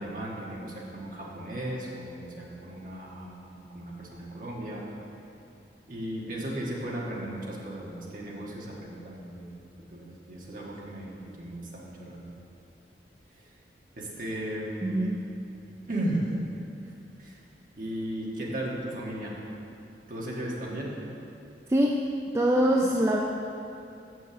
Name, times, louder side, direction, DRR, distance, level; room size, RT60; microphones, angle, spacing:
voice 1, 0.0-4.8 5.9-9.6 9.9-12.3 13.9-15.1 15.8-16.3 17.2-17.4 17.8-19.3 20.1-20.9, right 1 dB, 50° right, -4 dB, 1.5 m, -36 dB
voice 2, 14.8-15.2 21.7-22.1 22.3-23.2, equal, 15° right, -1 dB, 0.4 m, -23 dB
6.8 x 6.2 x 6.8 m, 2.6 s
head